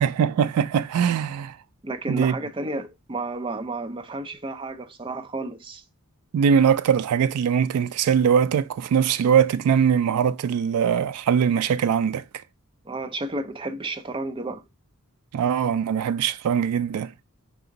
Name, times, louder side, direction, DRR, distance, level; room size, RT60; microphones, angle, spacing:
voice 1, 0.0-1.6 2.1-2.3 6.3-12.2 15.3-17.1, right 7 dB, 80° right, 0.3 m, -21 dB
voice 2, 1.8-5.8 12.8-14.6, right 2 dB, 25° right, 0.5 m, -32 dB
4.7 x 2.5 x 3.8 m
head